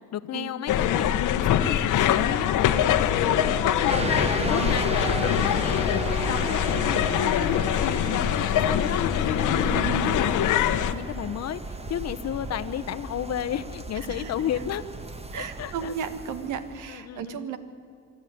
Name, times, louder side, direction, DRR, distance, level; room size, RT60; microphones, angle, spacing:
voice 1, 0.1-4.1 4.5-14.8 15.4-15.9 16.9-17.5, left 10 dB, 60° left, 11 dB, 0.9 m, -32 dB
sound 1, 0.7-10.9, left 10 dB, 85° left, 1.1 m, -24 dB
sound 2, 3.9-16.9, right 2 dB, 20° right, 1.6 m, -34 dB
voice 2, 4.4-4.8 9.5-10.2 14.1-14.3 15.3-17.6, right 7 dB, 80° right, 11 dB, 1.7 m, -34 dB
24.5 x 12.5 x 9.5 m, 2.4 s
cardioid pair, 90°, 30 cm